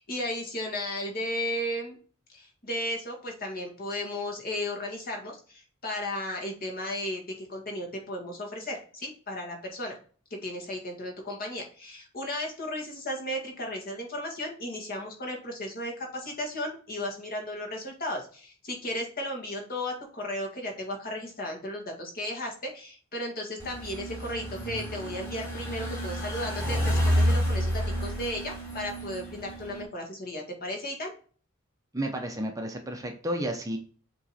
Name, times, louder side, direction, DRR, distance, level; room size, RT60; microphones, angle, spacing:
voice 1, 0.0-2.0 2.3-10.0 10.4-31.1, left 1 dB, 45° left, 1 dB, 1.9 m, -35 dB
sound 1, 23.6-29.8, equal, 15° left, 3.1 m, -29 dB
voice 2, 31.9-33.8, right 1 dB, 15° right, 4 dB, 0.7 m, -32 dB
7.5 x 3.1 x 4.2 m, 0.41 s
head